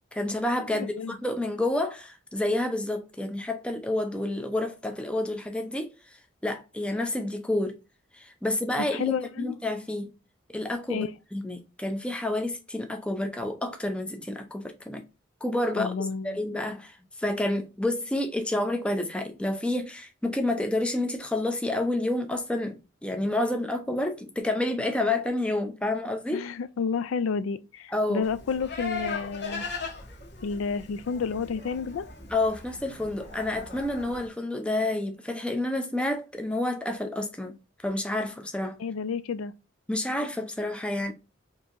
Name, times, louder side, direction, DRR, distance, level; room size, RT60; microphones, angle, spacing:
voice 1, 0.1-6.2 6.4-7.8 8.1-10.1 10.5-15.0 15.4-15.9 16.2-26.5 27.9-28.3 32.3-37.6 37.8-38.8 39.9-41.1, left 1 dB, 5° left, 0.4 m, -29 dB
voice 2, 0.7-1.2 8.8-9.6 10.9-11.1 15.8-16.4 26.3-29.6 30.4-32.1 38.8-39.5, left 5 dB, 80° left, 0.4 m, -30 dB
Livestock farm animals working animals, 28.2-34.3, left 4 dB, 50° left, 1.4 m, -39 dB
4.4 x 2.8 x 2.5 m
head